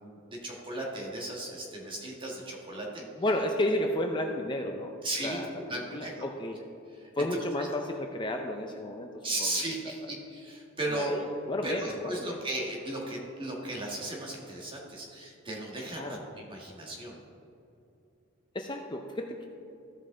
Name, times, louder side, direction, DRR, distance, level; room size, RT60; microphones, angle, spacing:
voice 1, 0.0-3.0 5.0-6.2 7.3-7.7 9.2-11.1 11.6-17.2, right 1 dB, 25° right, -2 dB, 1.6 m, -36 dB
voice 2, 3.2-4.9 5.2-5.5 5.9-6.6 7.2-9.6 10.9-12.4 16.0-16.2 18.5-19.5, left 1 dB, 25° left, 3 dB, 0.5 m, -32 dB
14.0 x 5.3 x 3.8 m, 2.7 s
head